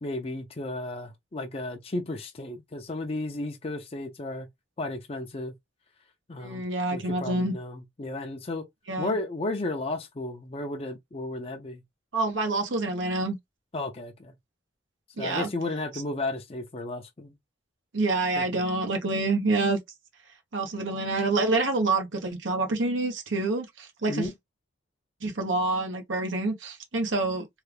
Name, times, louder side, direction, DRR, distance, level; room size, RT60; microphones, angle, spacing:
voice 1, 0.0-4.5 4.8-5.5 6.3-6.6 6.9-8.7 9.0-11.8 13.7-14.3 15.2-17.3 18.4-18.6 24.1-24.3, left 2 dB, 30° left, 0.6 m, -33 dB
voice 2, 6.4-7.5 8.9-9.1 12.1-13.4 15.2-15.5 17.9-19.8 20.5-24.3 25.2-27.5, right 2 dB, 90° right, 0.9 m, -27 dB
3.3 x 2.3 x 3.3 m
head